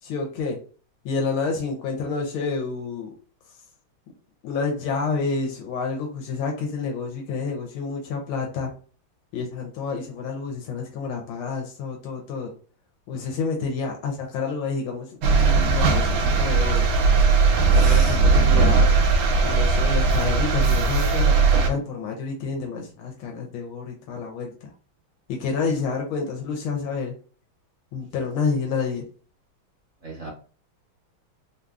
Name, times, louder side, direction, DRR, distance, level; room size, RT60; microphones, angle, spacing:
voice 1, 0.0-0.6 1.0-3.1 4.4-8.7 9.3-12.5 13.1-16.9 17.7-18.9 19.4-24.5 25.3-27.1 27.9-29.0, left 4 dB, 85° left, 1 dB, 1.5 m, -29 dB
sound 1, 15.2-21.7, right 4 dB, 75° right, 1.3 m, -18 dB
voice 2, 17.7-18.2 30.0-30.3, right 1 dB, 45° right, -3 dB, 1.2 m, -36 dB
3.5 x 2.6 x 2.3 m, 0.40 s
omnidirectional pair, 2.3 m